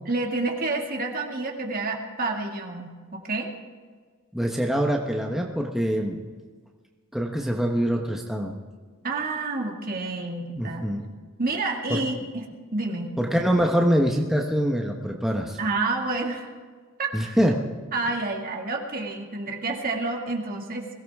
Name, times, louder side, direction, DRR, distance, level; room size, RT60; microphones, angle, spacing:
voice 1, 0.1-3.5 9.0-10.9 11.4-12.5 12.7-13.1 15.6-16.5 17.0-17.1 17.9-20.9, right 3 dB, 45° right, 2 dB, 2.2 m, -29 dB
voice 2, 4.3-6.3 7.1-8.6 10.6-11.1 11.9-12.0 13.2-15.6 17.1-17.5, equal, ahead, 0 dB, 1.1 m, -24 dB
22.5 x 16.5 x 3.6 m, 1.5 s
head